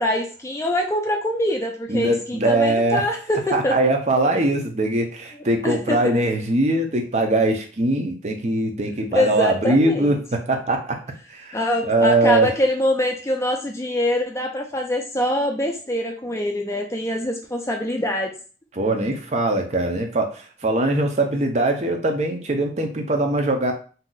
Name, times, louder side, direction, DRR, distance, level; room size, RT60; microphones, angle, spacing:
voice 1, 0.0-3.8 5.6-6.1 9.1-10.2 11.5-18.3, left 1 dB, 15° left, 2 dB, 0.4 m, -24 dB
voice 2, 1.9-3.1 3.5-11.0 11.3-11.6 11.8-12.5 18.7-23.7, right 2 dB, 40° right, 3 dB, 0.6 m, -21 dB
2.7 x 2.3 x 3.8 m, 0.38 s
head